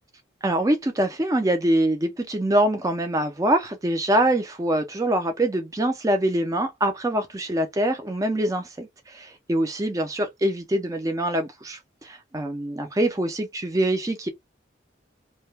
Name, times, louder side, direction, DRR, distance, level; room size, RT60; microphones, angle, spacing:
voice 1, 0.4-14.3, right 1 dB, 15° right, 0.4 m, -24 dB
2.2 x 2.1 x 3.1 m
head